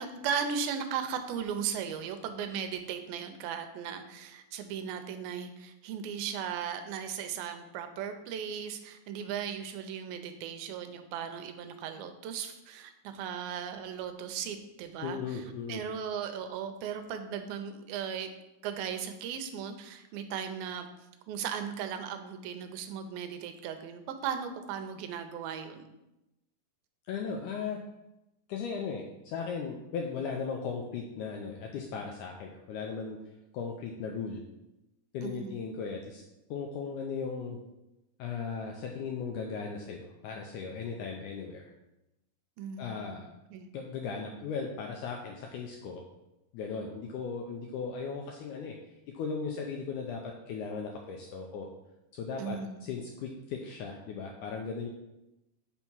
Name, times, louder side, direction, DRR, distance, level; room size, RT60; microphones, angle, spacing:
voice 1, 0.0-15.4 15.7-18.3 18.6-20.9 21.3-25.9 35.2-35.6 42.6-43.7 52.4-52.8, right 7 dB, 90° right, 7 dB, 2.5 m, -37 dB
voice 2, 15.0-15.8 27.1-27.8 28.5-33.2 33.5-34.4 35.1-36.2 36.5-37.6 38.2-41.6 42.8-43.3 43.7-46.0 46.5-48.8 49.1-51.7 52.1-54.9, left 5 dB, 85° left, 1 dB, 1.8 m, -37 dB
5.8 x 4.5 x 5.4 m, 0.94 s
omnidirectional pair, 4.1 m